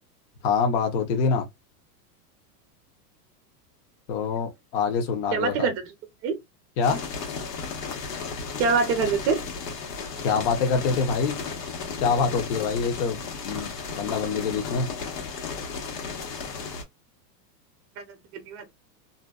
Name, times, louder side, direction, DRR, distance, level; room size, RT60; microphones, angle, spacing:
voice 1, 0.4-1.5 4.1-5.7 6.8-7.0 10.2-11.4 12.0-14.9, left 5 dB, 50° left, 0.7 m, -25 dB
voice 2, 5.3-5.9 6.2-6.4 8.6-9.4 18.3-18.7, right 5 dB, 30° right, 0.6 m, -24 dB
sound 1, 6.8-16.8, left 5 dB, 85° left, 1.2 m, -34 dB
2.5 x 2.1 x 2.3 m
supercardioid pair, 145°, 47 cm